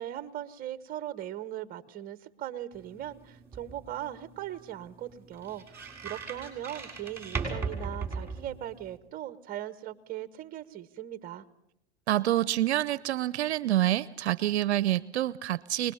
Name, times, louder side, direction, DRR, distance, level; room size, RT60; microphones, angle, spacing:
voice 1, 0.0-11.5, right 12 dB, 25° right, 14 dB, 1.1 m, -39 dB
sound 1, 2.7-9.0, right 4 dB, 5° right, 6.2 m, -39 dB
voice 2, 12.1-15.9, right 14 dB, 70° right, 19 dB, 0.7 m, -27 dB
27.0 x 20.0 x 5.6 m, 0.80 s
hypercardioid pair, 120°, 34 cm